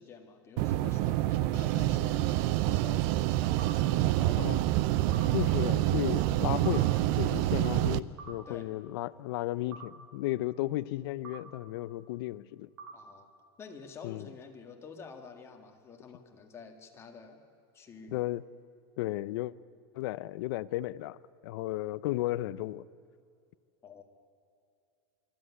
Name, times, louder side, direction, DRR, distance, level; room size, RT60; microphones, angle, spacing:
voice 1, 0.0-4.5 8.5-8.7 12.9-13.3 13.6-17.4 17.7-18.1 23.8-24.0, left 5 dB, 20° left, 3 dB, 2.1 m, -49 dB
sound 1, 0.6-8.0, right 15 dB, 50° right, 0.5 m, -27 dB
sound 2, 3.6-3.8 5.1-5.3 6.6-6.8 8.2-8.4 9.7-9.9 11.2-11.4 12.8-13.0, right 5 dB, 85° right, 2.9 m, -45 dB
voice 2, 5.3-12.7 14.0-14.3 18.1-18.4 19.0-19.5 19.9-21.2 21.4-22.8, left 17 dB, 65° left, 16 dB, 0.6 m, -34 dB
24.0 x 13.5 x 9.9 m, 2.4 s
supercardioid pair, 155°, 14 cm